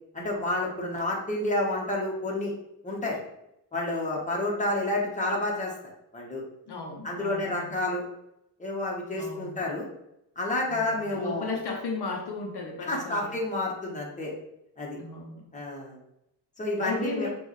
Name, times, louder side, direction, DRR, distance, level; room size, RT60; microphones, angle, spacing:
voice 1, 0.1-2.5 2.8-3.2 3.7-5.7 6.1-6.4 7.0-8.0 8.6-9.8 10.4-11.5 12.9-14.3 14.8-15.0 15.5-16.0 16.6-17.3, left 2 dB, 15° left, -3 dB, 1.2 m, -29 dB
voice 2, 6.7-7.7 9.2-9.6 10.7-13.3 15.0-15.4 16.8-17.3, left 4 dB, 60° left, 0 dB, 0.9 m, -35 dB
6.3 x 2.6 x 3.2 m, 0.82 s
wide cardioid pair, 120°, 43 cm